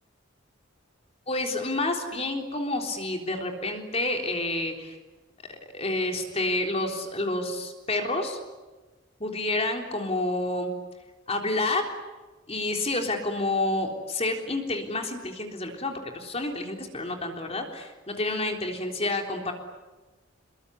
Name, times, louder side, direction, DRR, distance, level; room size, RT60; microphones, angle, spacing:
voice 1, 1.3-5.0 5.5-8.4 9.2-10.7 11.3-11.9 12.5-19.5, left 2 dB, 30° left, 3 dB, 3.7 m, -29 dB
26.5 x 22.5 x 9.8 m, 1.2 s
head